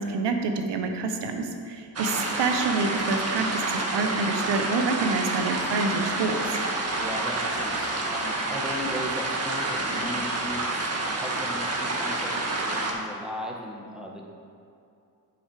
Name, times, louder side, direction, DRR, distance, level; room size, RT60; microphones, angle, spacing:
voice 1, 0.0-6.6, right 3 dB, 75° right, 5 dB, 1.0 m, -27 dB
sound 1, 2.0-12.9, right 2 dB, 35° right, 1.4 m, -28 dB
voice 2, 6.9-14.2, left 1 dB, ahead, -1 dB, 1.4 m, -37 dB
8.0 x 6.2 x 4.9 m, 2.5 s
cardioid pair, 65°, 42 cm